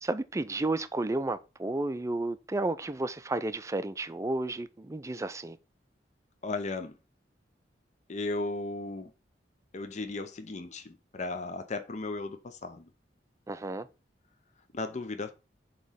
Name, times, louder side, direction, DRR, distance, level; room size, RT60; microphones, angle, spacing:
voice 1, 0.0-5.6 13.5-13.9, right 2 dB, 15° right, 0.4 m, -32 dB
voice 2, 6.4-7.0 8.1-9.1 9.7-12.9 14.7-15.3, left 2 dB, 40° left, 0.6 m, -35 dB
7.7 x 3.1 x 5.5 m
head